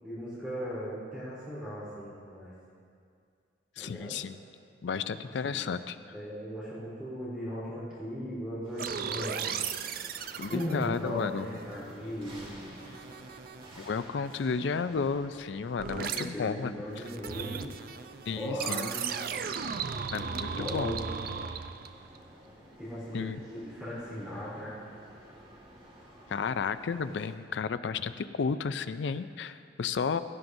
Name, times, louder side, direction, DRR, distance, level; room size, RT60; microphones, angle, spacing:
voice 1, 0.0-2.5 3.8-4.1 5.4-5.8 6.1-9.7 10.5-12.8 15.9-17.7 18.3-19.1 20.2-21.1 22.8-24.8, equal, 5° right, -11 dB, 3.4 m, -38 dB
voice 2, 3.8-4.4 4.8-6.0 10.4-11.6 13.8-16.8 18.3-18.9 20.1-21.0 23.1-23.4 26.3-30.2, left 5 dB, 75° left, 12 dB, 0.4 m, -32 dB
sound 1, 8.6-27.3, equal, 30° right, 1.8 m, -53 dB
sound 2, 8.8-12.0 12.4-13.9 15.8-16.3 16.9-22.2, right 7 dB, 55° right, 0.4 m, -37 dB
16.5 x 12.5 x 2.6 m, 2.2 s
head